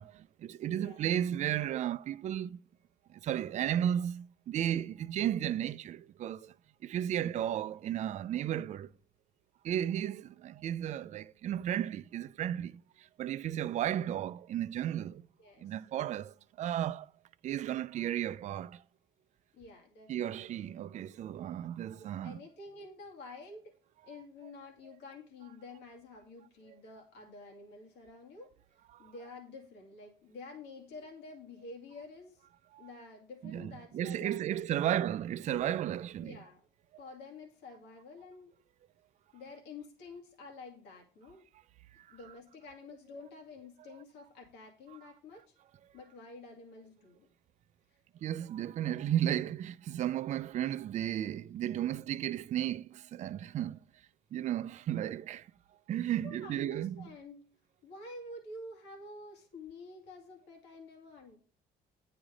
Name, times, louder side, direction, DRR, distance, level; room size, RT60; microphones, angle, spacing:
voice 1, 0.0-2.6 3.1-6.5 6.8-8.9 9.6-15.2 15.6-17.1 17.4-18.8 20.1-22.4 32.7-32.9 33.4-36.4 42.0-42.1 48.2-53.8 54.3-55.5 55.9-57.1, right 11 dB, 45° right, 0.4 m, -34 dB
voice 2, 0.7-1.0 7.3-7.5 15.4-15.8 19.5-20.6 22.0-23.7 24.0-28.5 29.0-32.4 32.8-35.1 36.2-36.6 37.0-38.5 39.3-41.5 42.1-45.5 45.9-47.3 56.2-57.4 57.8-61.4, left 3 dB, 85° left, 2.2 m, -49 dB
9.5 x 5.0 x 5.0 m
cardioid pair, 110°, 17 cm